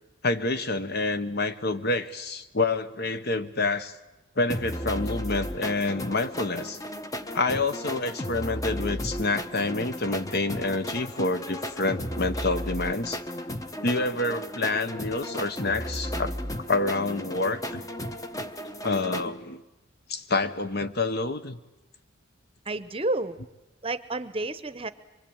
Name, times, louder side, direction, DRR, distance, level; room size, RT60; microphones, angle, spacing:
voice 1, 0.2-3.9 4.4-6.8 7.3-13.2 13.8-16.3 16.7-17.8 18.8-19.6 20.1-21.6, left 3 dB, 50° left, 11 dB, 1.1 m, -28 dB
sound 1, 4.5-19.3, equal, 15° left, 0.9 m, -34 dB
voice 2, 22.6-23.4 23.8-24.9, right 2 dB, 25° right, 13 dB, 0.8 m, -30 dB
24.5 x 23.0 x 8.8 m, 1.0 s
head